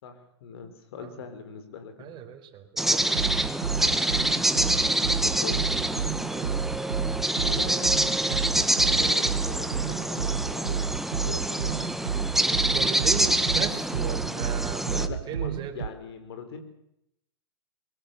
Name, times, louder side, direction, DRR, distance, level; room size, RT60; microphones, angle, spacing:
voice 1, 0.0-2.1 5.2-5.8 7.4-8.0 8.4-11.0 11.2-11.9 14.9-16.6, left 6 dB, 65° left, 9 dB, 5.0 m, -41 dB
voice 2, 2.0-3.5 3.7-4.3 5.7-5.9 6.3-6.6 8.1-8.4 8.9-9.2 12.7-15.8, right 9 dB, 35° right, 5 dB, 4.5 m, -38 dB
sound 1, 2.8-15.1, right 1 dB, ahead, 1.6 m, -26 dB
sound 2, 3.0-15.9, right 7 dB, 85° right, 0.9 m, -31 dB
24.0 x 22.0 x 7.2 m, 0.79 s
hypercardioid pair, 115°, 14 cm